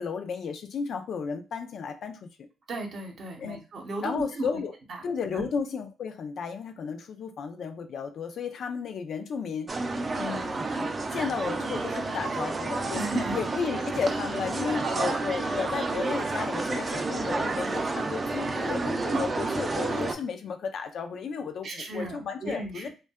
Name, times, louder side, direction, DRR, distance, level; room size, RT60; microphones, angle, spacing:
voice 1, 0.0-2.4 3.4-3.6 4.0-4.7 5.0-9.7 10.2-22.9, left 6 dB, 65° left, 6 dB, 0.4 m, -33 dB
voice 2, 2.7-4.6 4.9-5.0 5.3-5.5 12.9-13.4 14.8-15.2 19.1-19.3 21.6-22.9, right 2 dB, 55° right, 3 dB, 0.7 m, -34 dB
sound 1, 9.7-20.1, right 3 dB, 30° right, 0.4 m, -30 dB
2.6 x 2.2 x 2.3 m, 0.32 s
cardioid pair, 90°, 0 cm